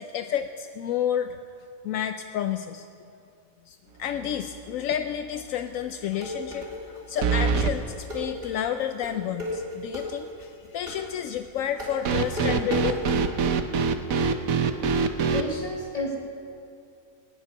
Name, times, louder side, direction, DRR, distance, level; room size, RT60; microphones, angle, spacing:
voice 1, 0.0-1.4 1.8-2.9 3.7-13.0, left 9 dB, 80° left, 8 dB, 1.0 m, -30 dB
sound 1, 4.1-4.6 4.9-5.0 7.2-7.7 12.1-15.5, right 5 dB, 85° right, 1.3 m, -24 dB
sound 2, 5.7-13.2, left 2 dB, 45° right, 4.5 m, -34 dB
voice 2, 15.3-16.2, left 1 dB, 25° left, -1 dB, 2.2 m, -31 dB
18.5 x 7.3 x 9.8 m, 2.4 s
omnidirectional pair, 1.4 m